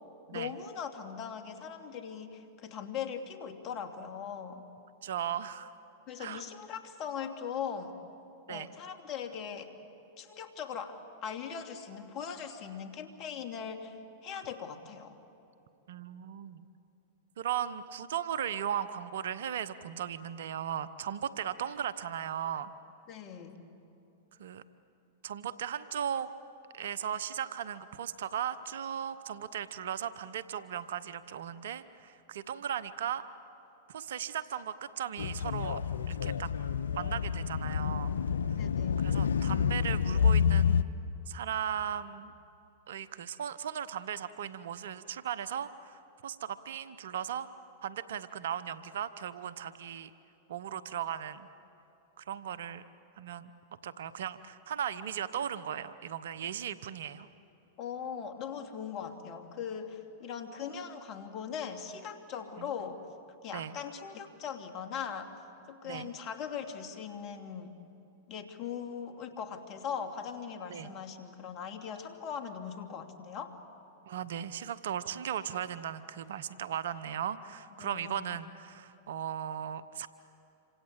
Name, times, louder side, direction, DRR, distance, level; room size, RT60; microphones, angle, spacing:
voice 1, 0.3-4.6 6.1-8.0 8.5-9.7 10.2-15.2 23.1-23.6 38.6-39.2 57.8-63.0 63.4-65.3 65.7-67.7 68.3-73.6 77.8-78.4, left 7 dB, 45° left, 6 dB, 2.6 m, -40 dB
voice 2, 5.0-5.7 6.2-6.4 8.5-8.7 15.9-16.6 17.4-22.7 24.4-24.6 25.2-26.3 26.7-33.2 33.9-35.8 36.1-36.5 36.9-38.1 38.5-38.6 39.0-40.9 41.3-42.3 42.9-47.5 47.8-50.1 50.5-51.5 52.2-52.8 53.2-53.5 53.8-57.3 62.6-62.7 63.5-63.7 65.8-66.1 70.7-70.9 74.1-80.1, right 9 dB, 70° right, 15 dB, 0.9 m, -37 dB
sound 1, 35.2-40.8, left 7 dB, 80° left, 0.6 m, -28 dB
27.5 x 25.5 x 8.3 m, 2.8 s
hypercardioid pair, 105°, 0 cm